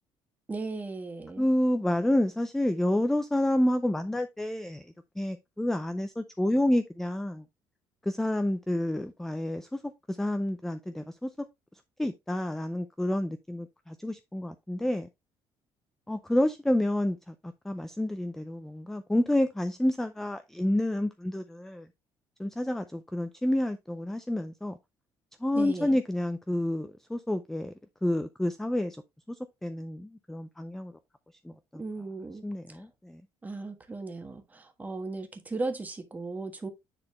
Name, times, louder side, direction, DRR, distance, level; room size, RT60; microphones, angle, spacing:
voice 1, 0.5-1.5 25.5-26.0 31.7-32.4 32.7-32.8 33.4-36.7, right 3 dB, 15° right, 1.4 m, -36 dB
voice 2, 1.4-4.8 5.2-7.4 8.1-9.8 10.1-11.3 12.0-15.1 16.1-17.3 17.6-21.9 22.4-24.8 25.4-27.7 28.0-29.0 29.3-29.4 29.6-30.9 31.4-31.8 32.4-33.2, left 1 dB, 5° left, 0.5 m, -29 dB
9.8 x 4.2 x 3.1 m
cardioid pair, 150°, 10 cm